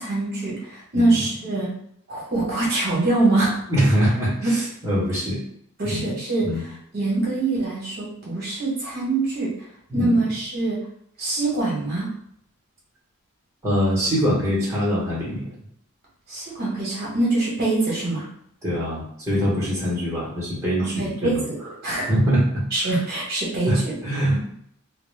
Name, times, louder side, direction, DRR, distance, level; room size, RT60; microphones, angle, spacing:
voice 1, 0.0-1.7 2.1-3.5 4.4-4.5 5.8-6.5 6.9-9.5 9.9-10.8 11.2-12.1 16.3-18.3 20.8-21.5 21.8-22.1 22.7-23.9 24.2-24.3, right 2 dB, 45° right, -6 dB, 0.8 m, -24 dB
voice 2, 3.7-5.4 5.9-6.1 6.4-6.6 9.9-10.2 13.6-15.4 18.6-21.4 22.1-22.6 23.7-24.5, equal, 15° right, -8 dB, 0.8 m, -23 dB
2.1 x 2.0 x 3.1 m, 0.68 s
head